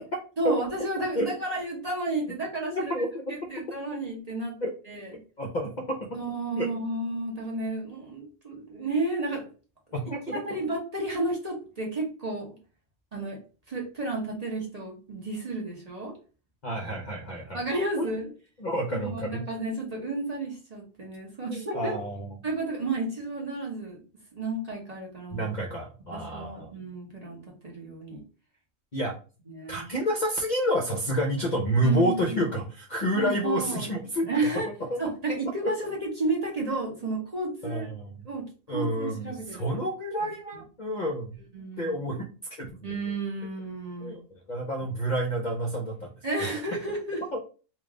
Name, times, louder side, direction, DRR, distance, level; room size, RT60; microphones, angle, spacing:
voice 1, 0.4-2.9 3.3-4.5 4.9-5.1 6.1-9.5 10.3-12.6 13.1-13.4 13.7-16.1 17.5-18.3 18.9-21.9 22.4-24.0 24.3-25.5 26.1-27.4 27.6-28.2 29.5-29.9 31.8-32.4 33.1-33.8 34.3-34.7 35.0-37.9 38.2-39.8 40.2-40.6 41.5-42.2 42.8-44.1 46.2-47.2, right 2 dB, 30° right, -1 dB, 0.9 m, -32 dB
voice 2, 2.7-3.4 4.6-4.7 5.4-6.1 6.6-6.7 9.9-10.4 16.6-17.6 18.0-18.1 18.6-19.4 21.5-22.3 25.3-26.7 28.9-29.1 29.7-34.3 34.9-35.0 35.6-35.7 37.6-38.2 38.7-41.4 41.8-42.2 42.6-42.9 44.0-46.1 46.4-46.5 47.3-47.4, equal, 45° left, 1 dB, 0.6 m, -29 dB
3.4 x 2.5 x 3.7 m, 0.36 s
omnidirectional pair, 1.5 m